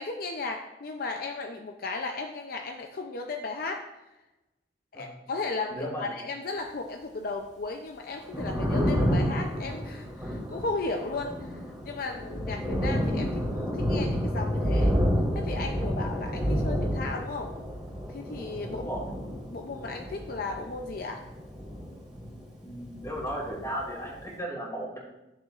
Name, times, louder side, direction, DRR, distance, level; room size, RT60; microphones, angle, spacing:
voice 1, 0.0-3.9 4.9-15.0 15.3-17.5 18.1-19.0 19.5-21.2, left 3 dB, 55° left, 4 dB, 0.5 m, -35 dB
voice 2, 5.7-6.1 16.4-16.7 18.7-19.0 22.6-25.0, right 1 dB, 20° left, -3 dB, 2.5 m, -36 dB
Thunder, 8.1-22.6 22.8-24.1, equal, 5° right, 2.7 m, -30 dB
11.5 x 7.0 x 2.5 m, 1.0 s
head